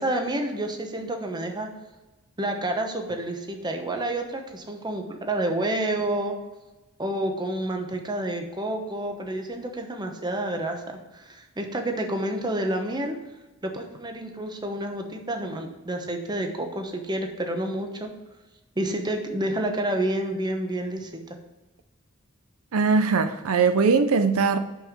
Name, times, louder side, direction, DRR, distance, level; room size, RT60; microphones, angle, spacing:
voice 1, 0.0-1.7 2.4-6.4 7.0-10.8 11.1-13.1 13.6-18.1 18.8-21.4, right 1 dB, 20° right, 4 dB, 1.0 m, -29 dB
voice 2, 22.7-24.6, right 4 dB, 75° right, 9 dB, 0.5 m, -20 dB
6.2 x 5.6 x 6.4 m, 1.1 s
head